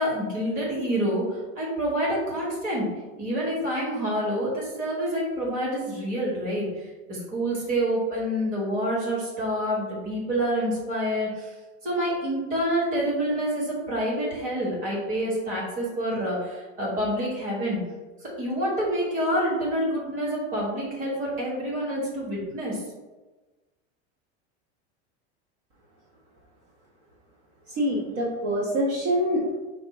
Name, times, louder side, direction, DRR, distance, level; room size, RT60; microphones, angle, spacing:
voice 1, 0.0-2.9 3.2-11.5 11.8-17.8 18.2-22.8, equal, 25° right, -5 dB, 1.3 m, -27 dB
voice 2, 27.8-29.6, equal, 55° right, -4 dB, 1.0 m, -25 dB
5.2 x 2.4 x 4.1 m, 1.2 s
supercardioid pair, 170°, 32 cm